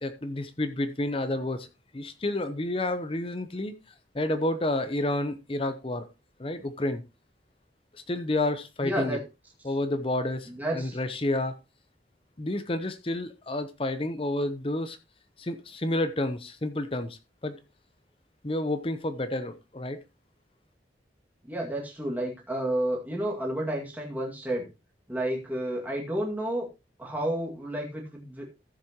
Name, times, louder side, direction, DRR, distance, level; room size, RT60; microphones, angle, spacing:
voice 1, 0.0-1.7 1.9-3.7 4.1-6.1 6.4-7.0 7.9-9.2 9.6-11.6 12.4-15.0 15.4-17.6 18.4-20.0, left 1 dB, 30° left, 0.7 m, -30 dB
voice 2, 8.8-9.2 9.7-9.8 10.5-11.0 21.4-24.7 25.1-26.7 27.0-28.5, right 1 dB, 10° right, 2.1 m, -31 dB
14.5 x 7.4 x 3.0 m
head